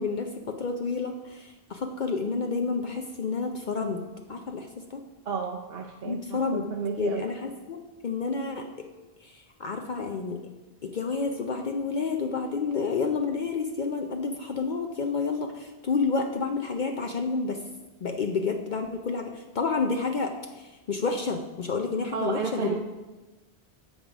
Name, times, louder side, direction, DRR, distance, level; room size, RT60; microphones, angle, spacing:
voice 1, 0.0-4.0 4.3-5.0 6.0-6.7 7.0-8.9 9.2-10.4 10.8-17.6 18.0-22.7, left 4 dB, 55° left, 4 dB, 0.7 m, -30 dB
voice 2, 5.3-7.3 22.1-22.7, right 6 dB, 65° right, 1 dB, 0.9 m, -32 dB
7.7 x 5.3 x 6.0 m, 1.1 s
omnidirectional pair, 1.1 m